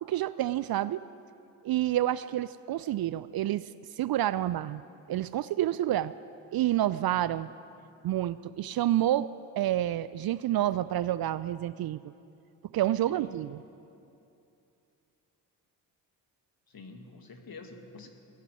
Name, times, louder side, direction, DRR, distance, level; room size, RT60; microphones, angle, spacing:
voice 1, 0.0-1.0 1.6-3.7 4.0-4.8 5.1-6.1 6.5-7.5 8.0-9.3 9.6-12.0 12.7-13.6, right 13 dB, 50° right, 16 dB, 0.5 m, -28 dB
voice 2, 16.7-18.1, left 4 dB, 45° left, 4 dB, 2.2 m, -47 dB
17.5 x 9.1 x 8.3 m, 2.6 s
hypercardioid pair, 40°, 49 cm